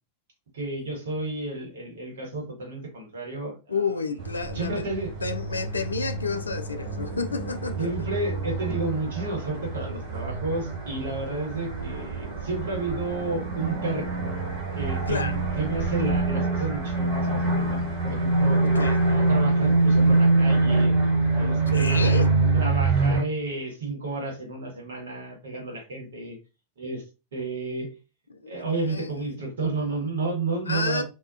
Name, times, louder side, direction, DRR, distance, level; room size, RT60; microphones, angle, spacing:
voice 1, 0.5-3.8 4.5-5.1 7.8-14.1 14.7-18.6 19.1-20.9 21.3-22.2 22.5-26.4 26.8-27.0 27.3-27.9 28.5-31.0, right 3 dB, 65° right, 1.2 m, -31 dB
voice 2, 3.7-4.9 5.2-7.9 15.1-15.4 18.6-19.0 21.7-22.3 28.3-29.1 30.7-31.0, left 4 dB, 75° left, 0.3 m, -30 dB
sound 1, 4.2-23.2, right 2 dB, 45° right, 1.4 m, -25 dB
2.4 x 2.2 x 2.5 m
figure-of-eight pair, 90°, 0 cm